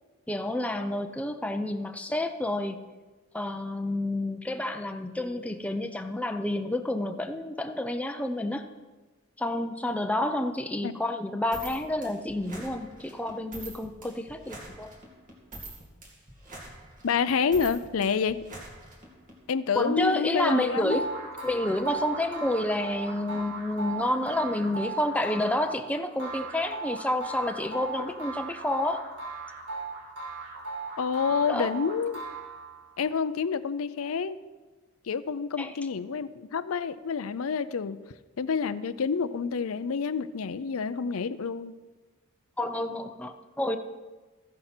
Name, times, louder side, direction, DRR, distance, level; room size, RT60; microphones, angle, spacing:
voice 1, 0.3-2.8 3.3-8.7 9.4-14.9 19.7-21.1 21.4-29.0 31.5-31.7 35.6-35.7 42.6-43.8, left 1 dB, 5° left, 6 dB, 0.6 m, -29 dB
sound 1, 11.5-19.4, right 2 dB, 40° right, 2.4 m, -45 dB
voice 2, 17.0-18.4 19.5-21.0 31.0-32.2 33.0-34.4 35.1-38.0 38.4-41.7, left 6 dB, 70° left, 14 dB, 0.5 m, -28 dB
sound 2, 20.4-32.9, right 3 dB, 75° right, 4.3 m, -37 dB
14.5 x 10.5 x 4.4 m, 1.3 s
head